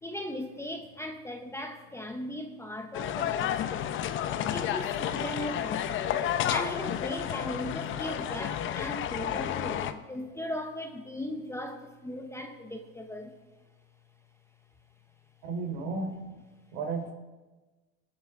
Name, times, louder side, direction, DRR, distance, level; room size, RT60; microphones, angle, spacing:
voice 1, 0.0-4.0 4.5-6.1 6.5-13.6 15.7-16.1, left 1 dB, 10° left, 5 dB, 0.8 m, -38 dB
sound 1, 2.9-9.9, left 10 dB, 35° left, 0.7 m, -31 dB
voice 2, 15.4-16.1 16.7-17.1, right 4 dB, 70° right, 3 dB, 3.4 m, -33 dB
21.5 x 8.0 x 3.6 m, 1.2 s
supercardioid pair, 120°, 33 cm